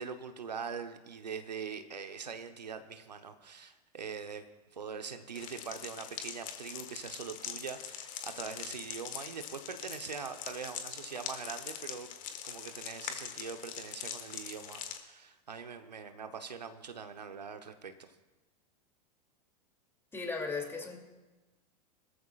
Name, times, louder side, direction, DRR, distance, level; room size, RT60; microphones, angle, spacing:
voice 1, 0.0-4.5 4.7-18.1, right 6 dB, 85° right, 8 dB, 1.1 m, -43 dB
sound 1, 5.3-15.0, left 9 dB, 40° left, 1.6 m, -43 dB
voice 2, 20.1-21.0, left 4 dB, 10° left, 1 dB, 2.7 m, -36 dB
22.0 x 14.0 x 2.5 m, 1.2 s
hypercardioid pair, 95°, 21 cm